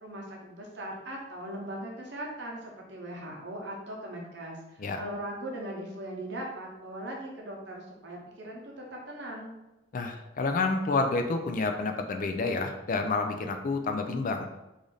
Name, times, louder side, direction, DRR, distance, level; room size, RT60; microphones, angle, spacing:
voice 1, 0.0-9.5, right 1 dB, 60° right, -1 dB, 0.9 m, -39 dB
voice 2, 9.9-14.5, left 3 dB, 45° left, 5 dB, 0.3 m, -29 dB
3.2 x 2.6 x 3.8 m, 0.98 s
head